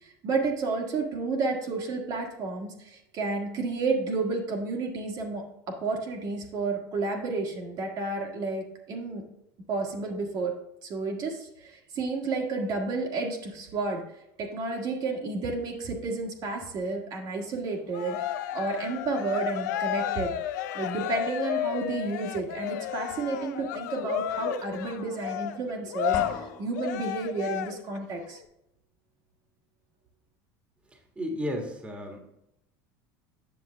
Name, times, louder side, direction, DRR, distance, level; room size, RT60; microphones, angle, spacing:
voice 1, 0.0-9.2 9.7-10.5 10.8-14.0 14.4-20.3 20.7-28.4, right 3 dB, 45° right, 1 dB, 1.4 m, -31 dB
Cheering, 17.9-28.0, left 11 dB, 85° left, 0.5 m, -32 dB
sound 1, 26.1-27.1, left 4 dB, 45° left, 1.7 m, -39 dB
voice 2, 30.9-32.2, equal, 10° right, 2 dB, 1.4 m, -34 dB
8.0 x 6.5 x 3.3 m, 0.81 s
supercardioid pair, 120°, 9 cm